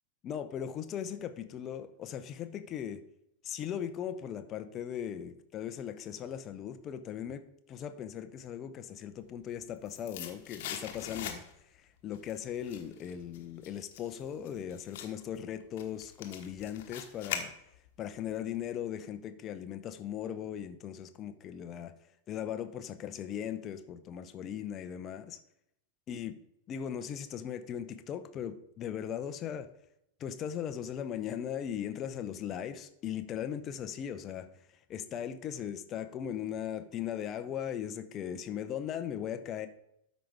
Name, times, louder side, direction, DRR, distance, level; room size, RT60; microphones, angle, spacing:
voice 1, 0.2-3.0 3.4-7.4 7.7-11.4 12.0-17.5 18.0-21.9 22.3-25.4 26.1-26.4 26.7-29.7 30.2-34.5 34.9-39.7, left 9 dB, 30° left, 10 dB, 0.7 m, -38 dB
sound 1, 9.4-11.8 12.1-18.0 18.3-18.4, left 9 dB, 50° left, 1.1 m, -42 dB
12.5 x 5.1 x 3.5 m, 0.77 s
figure-of-eight pair, 90°, 0 cm